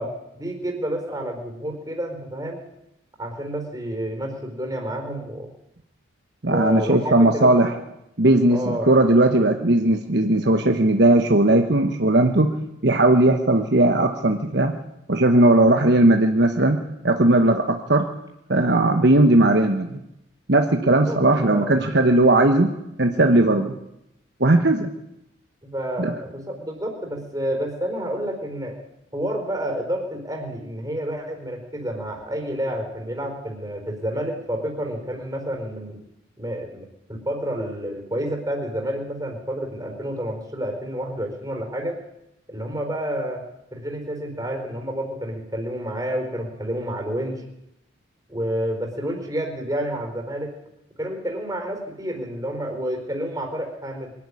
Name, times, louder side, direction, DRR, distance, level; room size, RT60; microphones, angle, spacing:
voice 1, 0.0-2.6 3.2-5.5 6.4-7.5 8.5-8.9 20.8-21.2 21.5-21.9 23.5-23.7 25.6-28.7 29.1-36.0 36.4-42.0 42.5-43.4 43.7-47.4 48.3-50.5 51.0-54.1, equal, 15° right, 3 dB, 4.4 m, -29 dB
voice 2, 6.4-7.7 8.2-12.5 12.8-14.7 15.1-18.1 18.5-20.0 20.5-22.7 23.0-23.7 24.4-24.9 26.0-26.1, right 1 dB, 55° right, 5 dB, 1.3 m, -18 dB
23.0 x 13.5 x 10.0 m, 0.84 s
head